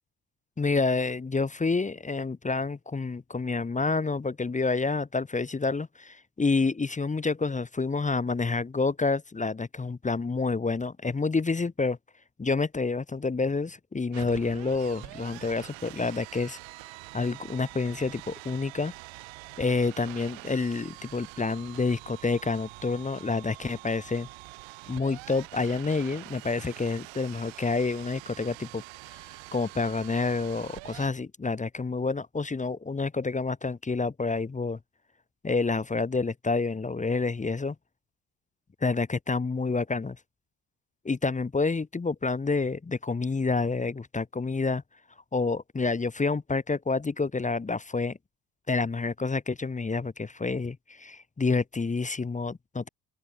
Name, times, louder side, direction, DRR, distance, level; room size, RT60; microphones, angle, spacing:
voice 1, 0.6-12.0 12.4-16.6 17.1-18.9 19.6-24.3 24.9-28.8 29.5-34.8 35.4-37.7 38.8-40.2 41.0-44.8 45.3-48.2 48.7-52.9, left 4 dB, 15° left, 1.2 m, -28 dB
sound 1, 14.1-31.1, right 23 dB, 65° right, 3.3 m, -45 dB
open air
hypercardioid pair, 60°, 49 cm